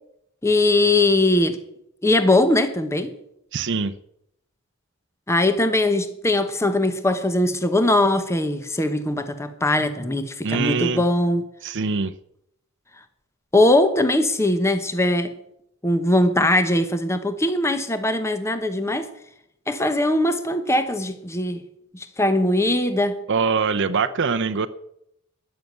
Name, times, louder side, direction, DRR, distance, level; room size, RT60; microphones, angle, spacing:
voice 1, 0.4-1.6 2.0-3.1 5.3-11.5 13.5-15.3 15.8-19.1 19.7-21.6 21.9-23.2, left 1 dB, 15° left, 9 dB, 0.9 m, -20 dB
voice 2, 3.5-3.9 10.4-11.0 11.6-12.1 23.3-24.7, right 5 dB, 60° right, 9 dB, 0.7 m, -23 dB
12.5 x 11.0 x 8.1 m, 0.77 s
head